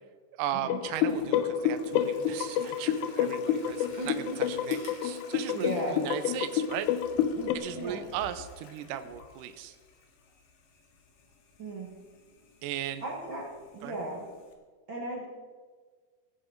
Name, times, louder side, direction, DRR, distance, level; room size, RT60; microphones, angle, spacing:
voice 1, 0.4-6.9 7.5-9.8 12.6-13.0 13.8-14.0, right 10 dB, 85° right, 10 dB, 1.9 m, -37 dB
sound 1, 0.7-7.6, left 9 dB, 90° left, 2.8 m, -29 dB
Toilet flush, 0.9-14.5, left 4 dB, 65° left, 2.8 m, -52 dB
Chewing mastication, 3.6-6.2 6.5-6.6, left 2 dB, 35° left, 2.5 m, -53 dB
voice 2, 4.0-4.4 5.5-6.0 7.3-8.0 11.6-11.9 13.0-13.5 13.7-14.3 14.9-15.2, right 1 dB, 60° right, -3 dB, 1.3 m, -36 dB
17.5 x 8.6 x 4.6 m, 1.5 s
omnidirectional pair, 4.8 m